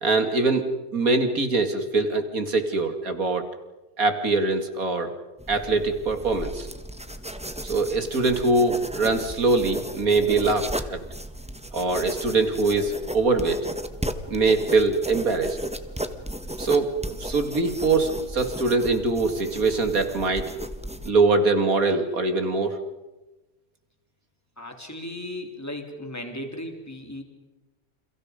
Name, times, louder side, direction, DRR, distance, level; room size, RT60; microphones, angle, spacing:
voice 1, 0.0-3.5 4.0-5.1 5.5-6.7 7.6-11.0 11.7-13.7 14.3-15.6 16.6-20.5 21.1-22.8, right 3 dB, 70° right, 7 dB, 2.9 m, -23 dB
sound 1, 5.4-21.1, equal, 5° right, 1.4 m, -35 dB
voice 2, 24.6-27.2, left 1 dB, 10° left, 3 dB, 3.6 m, -36 dB
30.0 x 29.0 x 5.2 m, 1.1 s
omnidirectional pair, 1.5 m